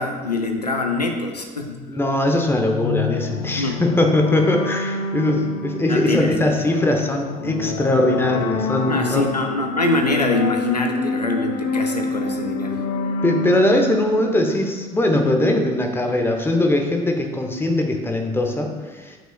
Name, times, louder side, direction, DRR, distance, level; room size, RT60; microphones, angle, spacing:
voice 1, 0.0-1.8 3.6-3.8 5.9-6.7 8.9-12.8, left 2 dB, 85° left, 4 dB, 0.6 m, -24 dB
voice 2, 1.9-9.3 13.2-19.2, left 1 dB, 10° left, 3 dB, 0.9 m, -20 dB
sound 1, 2.7-15.2, left 3 dB, 50° left, 0.7 m, -28 dB
8.8 x 5.6 x 2.2 m, 1.3 s
figure-of-eight pair, 60°, 20 cm